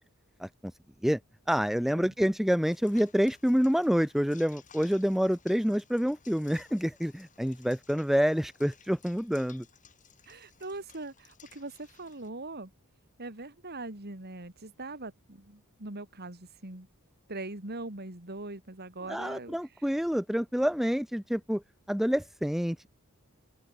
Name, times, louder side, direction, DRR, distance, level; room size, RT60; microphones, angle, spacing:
voice 1, 1.5-9.6 19.1-21.6 21.9-22.9, equal, ahead, 0.7 m, -27 dB
sound 1, 2.7-12.3, left 7 dB, 35° left, 4.2 m, -58 dB
voice 2, 10.3-12.7 13.2-16.9 17.3-20.0, right 2 dB, 45° right, 3.3 m, -41 dB
open air
head